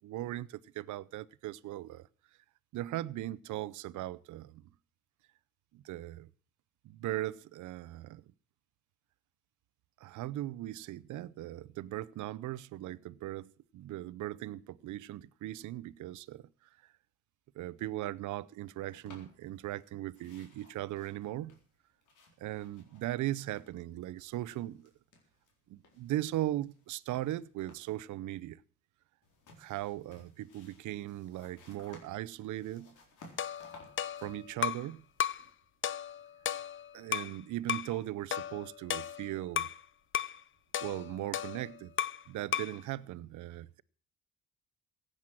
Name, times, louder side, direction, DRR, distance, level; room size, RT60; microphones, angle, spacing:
voice 1, 0.0-2.1 2.7-4.6 5.7-6.3 6.8-8.3 10.0-16.7 17.5-21.6 22.4-24.9 25.7-28.6 29.6-32.9 34.2-35.0 36.9-39.7 40.8-41.9 42.3-43.8, right 14 dB, 80° right, 0.6 m, -38 dB
sound 1, 18.9-19.9 20.1-23.9 24.1-25.5 25.8-28.0 29.2-35.5, left 3 dB, 85° left, 4.1 m, -59 dB
sound 2, 33.4-34.9 35.2-35.5 35.8-37.4 37.7-37.9 38.3-39.8 40.1-40.4 40.7-42.3 42.5-42.8, left 9 dB, 40° left, 0.6 m, -35 dB
16.0 x 9.1 x 6.1 m
cardioid pair, 90°, 30 cm